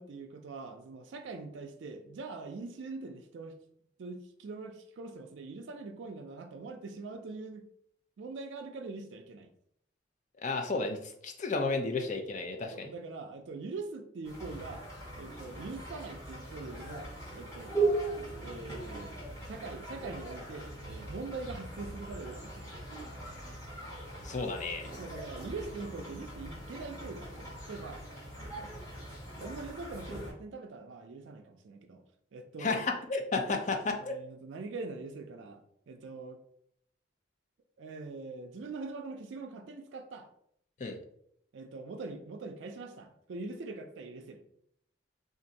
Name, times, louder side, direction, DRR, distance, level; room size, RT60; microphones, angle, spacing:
voice 1, 0.0-3.6 4.0-7.6 8.2-9.5 12.7-14.8 15.2-17.1 17.3-17.7 18.4-19.1 19.5-22.7 25.0-28.0 28.4-28.7 29.4-32.0 32.3-32.8 34.0-36.4 37.8-40.3 41.5-44.4, right 3 dB, 70° right, 5 dB, 0.4 m, -43 dB
voice 2, 10.4-12.9 24.2-24.9 32.6-34.2 40.8-41.0, left 3 dB, 40° left, 4 dB, 0.4 m, -32 dB
sound 1, 14.2-30.3, right 2 dB, 15° left, 1.0 m, -39 dB
2.6 x 2.5 x 4.0 m, 0.71 s
head